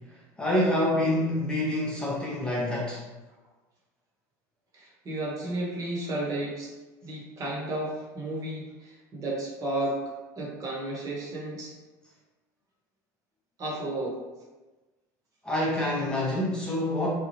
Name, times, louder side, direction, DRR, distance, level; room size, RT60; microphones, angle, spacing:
voice 1, 0.4-3.0 15.4-17.1, left 1 dB, 10° left, -5 dB, 0.6 m, -26 dB
voice 2, 4.7-6.7 7.0-10.0 10.4-11.7 13.6-14.2, right 1 dB, 40° right, -3 dB, 1.0 m, -33 dB
2.9 x 2.3 x 2.8 m, 1.2 s
supercardioid pair, 105°, 9 cm